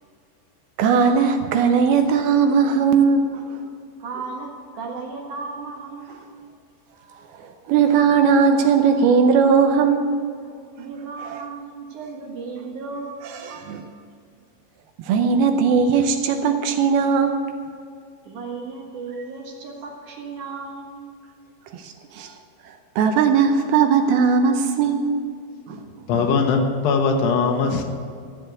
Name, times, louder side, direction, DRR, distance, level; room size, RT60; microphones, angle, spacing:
voice 1, 0.8-3.4 7.4-10.1 13.4-13.8 15.0-17.4 21.7-22.3 22.7-25.2 25.7-26.2, right 6 dB, 75° right, 6 dB, 2.5 m, -19 dB
voice 2, 4.0-6.4 10.8-13.7 18.3-21.2, right 4 dB, 55° right, -1 dB, 2.6 m, -35 dB
voice 3, 26.1-27.8, left 4 dB, 80° left, 4 dB, 3.4 m, -20 dB
14.5 x 7.8 x 8.0 m, 2.3 s
omnidirectional pair, 4.8 m